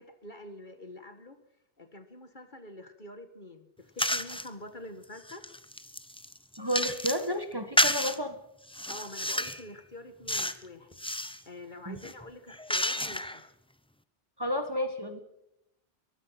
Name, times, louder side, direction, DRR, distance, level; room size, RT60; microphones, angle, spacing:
voice 1, 0.0-1.4 1.8-5.5 8.9-11.0 11.5-13.4, left 1 dB, 45° left, 9 dB, 1.8 m, -46 dB
sound 1, 4.0-4.5 5.0-7.3 7.8-8.2 8.7-9.6 10.3-10.6 10.9-11.4 12.0-13.4, left 1 dB, 5° left, 0.7 m, -30 dB
voice 2, 6.6-8.4 11.8-12.0 14.4-15.2, equal, 20° right, 7 dB, 1.7 m, -31 dB
23.0 x 20.0 x 5.9 m, 0.84 s
omnidirectional pair, 1.2 m